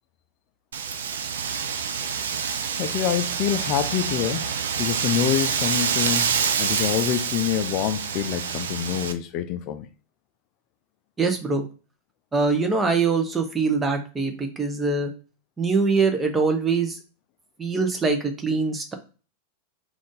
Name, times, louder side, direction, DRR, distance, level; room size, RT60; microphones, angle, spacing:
Wind, 0.7-9.1, right 6 dB, 65° right, 0.4 m, -27 dB
voice 1, 2.7-4.5 4.8-9.9, left 9 dB, 40° left, 0.4 m, -26 dB
voice 2, 11.2-11.6 12.3-15.1 15.6-16.9 17.6-18.9, right 4 dB, 15° right, 0.9 m, -23 dB
3.7 x 2.5 x 3.7 m
figure-of-eight pair, 90°, 0 cm